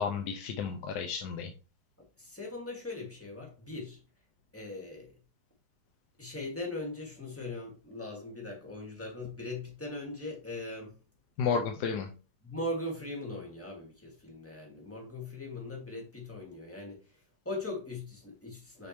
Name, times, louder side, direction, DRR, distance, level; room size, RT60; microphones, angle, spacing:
voice 1, 0.0-1.5 11.4-12.1, left 6 dB, 70° left, 1.2 m, -32 dB
voice 2, 2.0-4.0 4.5-5.2 6.2-11.0 12.4-18.9, left 2 dB, 5° left, 2.0 m, -40 dB
6.3 x 5.4 x 3.1 m
omnidirectional pair, 2.0 m